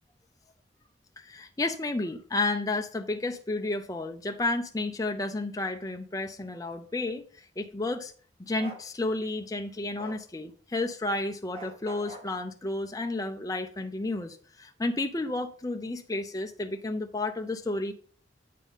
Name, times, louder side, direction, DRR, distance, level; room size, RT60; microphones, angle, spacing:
voice 1, 1.2-8.1 8.4-17.9, left 2 dB, 20° left, 0.5 m, -32 dB
Bark, 8.6-8.8 10.0-10.2 11.5-12.3, right 2 dB, 30° right, 1.0 m, -43 dB
8.3 x 3.6 x 5.5 m
head